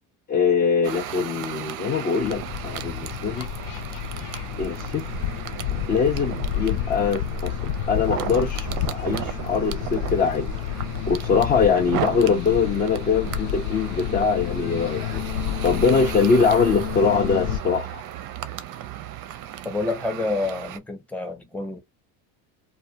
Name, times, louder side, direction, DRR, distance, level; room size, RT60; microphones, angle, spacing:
voice 1, 0.3-3.5 4.6-5.0 5.9-7.5 7.9-10.5 11.1-15.4 15.6-18.0, left 5 dB, 20° left, 0.4 m, -22 dB
sound 1, 0.8-20.8, right 11 dB, 45° right, 0.5 m, -35 dB
sound 2, 2.2-17.6, left 9 dB, 70° left, 0.5 m, -30 dB
voice 2, 19.6-21.8, left 3 dB, 5° left, 0.8 m, -28 dB
2.4 x 2.2 x 2.7 m
supercardioid pair, 100°, 47 cm